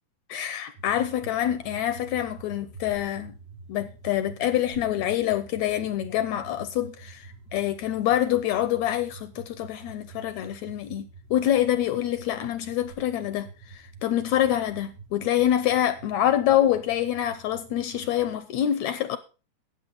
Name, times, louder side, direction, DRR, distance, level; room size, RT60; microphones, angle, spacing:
voice 1, 0.3-3.3 3.7-19.2, left 11 dB, 75° left, 1.8 m, -26 dB
sound 1, 0.8-18.4, right 4 dB, 70° right, 3.5 m, -47 dB
13.0 x 8.9 x 4.0 m
omnidirectional pair, 3.7 m